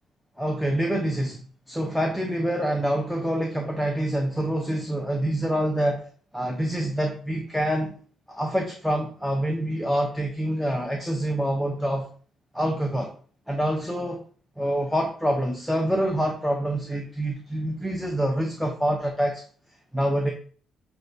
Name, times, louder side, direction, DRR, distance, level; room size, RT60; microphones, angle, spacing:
voice 1, 0.4-1.4 1.7-6.1 6.3-8.0 8.3-12.1 12.5-13.1 13.5-14.2 14.6-19.4 19.9-20.3, right 1 dB, ahead, 2 dB, 0.6 m, -26 dB
6.1 x 2.3 x 2.6 m, 0.42 s
cardioid pair, 90°, 0 cm